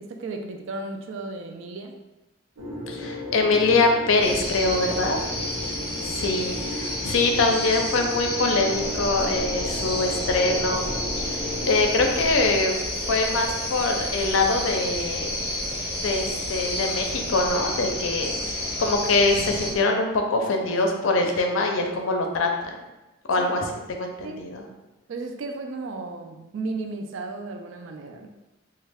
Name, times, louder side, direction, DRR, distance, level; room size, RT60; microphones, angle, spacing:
voice 1, 0.0-1.9 5.0-5.9 23.4-23.6 24.2-24.5 25.1-28.3, right 3 dB, 65° right, 4 dB, 0.3 m, -35 dB
sound 1, 2.6-12.6, left 1 dB, 85° right, 0.8 m, -35 dB
voice 2, 2.9-5.2 6.0-10.8 11.2-12.8 13.1-15.4 16.0-18.3 18.8-22.7 23.3-24.6, left 3 dB, 75° left, 3 dB, 0.5 m, -23 dB
sound 2, 4.2-19.7, left 1 dB, 30° left, 0.7 m, -30 dB
sound 3, 8.7-19.8, equal, 20° right, 0.6 m, -38 dB
3.1 x 2.3 x 3.4 m, 1.0 s
head